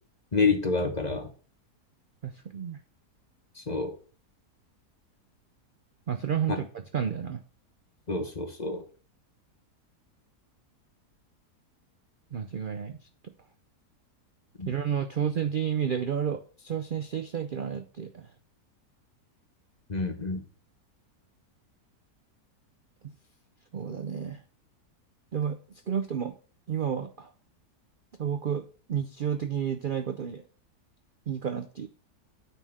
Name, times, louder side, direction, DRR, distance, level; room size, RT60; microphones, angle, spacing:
voice 1, 0.3-1.3 3.6-3.9 6.5-6.6 8.1-8.8 14.6-14.7 19.9-20.4, left 4 dB, 30° left, 5 dB, 1.1 m, -28 dB
voice 2, 2.2-2.8 6.1-7.4 12.3-13.0 14.7-18.3 23.7-24.4 25.3-25.6 25.9-26.3 26.7-27.3 28.2-28.6 28.9-30.4 31.3-31.9, right 8 dB, 60° right, 8 dB, 0.5 m, -31 dB
9.1 x 4.3 x 6.3 m, 0.39 s
omnidirectional pair, 1.7 m